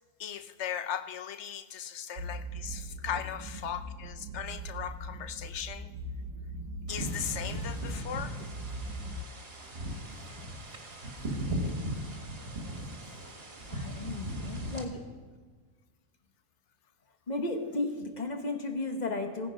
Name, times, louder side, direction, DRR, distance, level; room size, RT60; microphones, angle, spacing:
voice 1, 0.2-5.9 6.9-8.4, left 9 dB, 65° left, 11 dB, 0.9 m, -38 dB
sound 1, 2.2-9.2, right 1 dB, 75° right, 1.2 m, -40 dB
sound 2, 6.9-14.8, right 1 dB, 50° right, 1.9 m, -38 dB
voice 2, 13.7-15.0 17.3-19.5, left 2 dB, 35° left, 5 dB, 1.2 m, -34 dB
15.5 x 9.9 x 5.1 m, 1.5 s
omnidirectional pair, 1.4 m